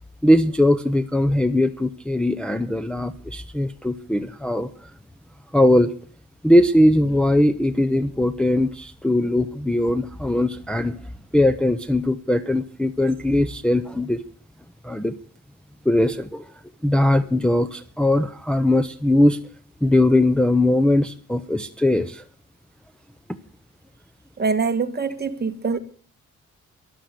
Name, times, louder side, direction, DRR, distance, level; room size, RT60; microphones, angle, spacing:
voice 1, 0.2-4.9 5.5-5.9 6.4-11.0 11.3-14.2 14.8-15.2 15.8-16.5 16.8-19.4 19.8-22.2, left 1 dB, 5° left, 0.6 m, -20 dB
voice 2, 24.4-25.8, right 4 dB, 30° right, 1.5 m, -24 dB
13.5 x 11.5 x 6.7 m
wide cardioid pair, 140°, 31 cm